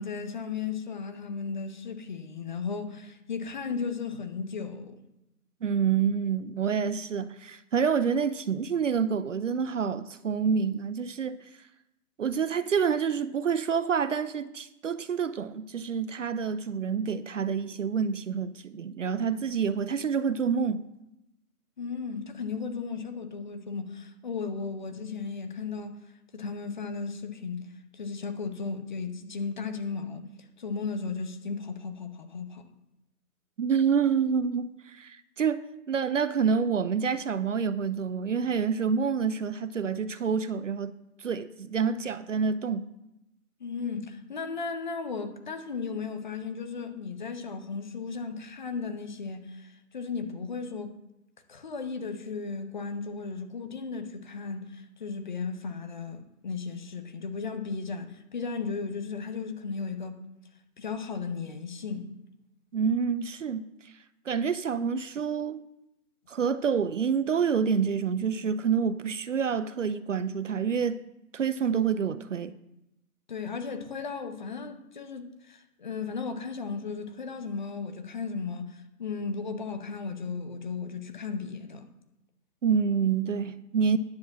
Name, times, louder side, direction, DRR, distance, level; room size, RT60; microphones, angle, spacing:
voice 1, 0.0-5.0 21.8-27.7 27.9-32.6 43.6-51.0 51.5-60.2 60.8-62.1 73.3-81.9, left 5 dB, 30° left, 0.8 m, -35 dB
voice 2, 5.6-11.5 12.2-20.9 33.6-42.9 62.7-63.9 64.3-65.6 66.3-71.0 71.3-72.6 82.6-84.0, right 6 dB, 55° right, 0.5 m, -28 dB
10.0 x 5.1 x 7.4 m
hypercardioid pair, 155°, 46 cm